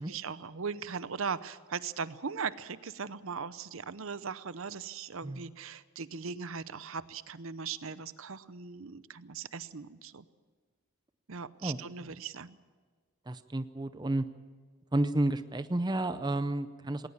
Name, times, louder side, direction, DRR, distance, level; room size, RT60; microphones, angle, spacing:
voice 1, 0.0-10.2 11.3-12.6, right 5 dB, 65° right, 15 dB, 0.7 m, -39 dB
voice 2, 13.3-14.2 14.9-17.1, right 1 dB, 20° right, 11 dB, 0.6 m, -31 dB
19.0 x 19.0 x 7.2 m, 1.5 s
head